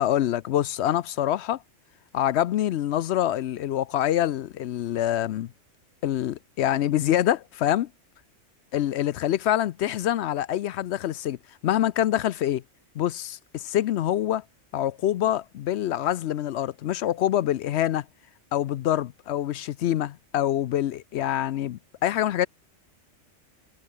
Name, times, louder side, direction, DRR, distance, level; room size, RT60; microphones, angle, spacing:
voice 1, 0.0-1.6 2.1-5.5 6.0-7.9 8.7-11.4 11.6-12.6 13.0-14.4 14.7-18.0 18.5-22.5, left 12 dB, 70° left, 0.8 m, -25 dB
omnidirectional pair, 1.3 m